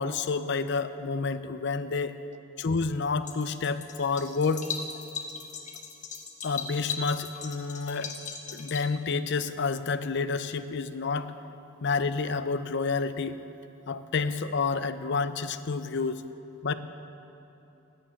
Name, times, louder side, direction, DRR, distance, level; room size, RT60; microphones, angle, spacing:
voice 1, 0.0-2.2 2.6-4.6 6.4-8.1 8.5-11.3 11.8-13.4 13.9-16.2 16.6-16.7, left 4 dB, 60° left, 12 dB, 0.5 m, -29 dB
tap water on vase, 3.3-8.8, left 6 dB, 40° left, 1.1 m, -38 dB
10.0 x 10.0 x 8.7 m, 2.9 s
head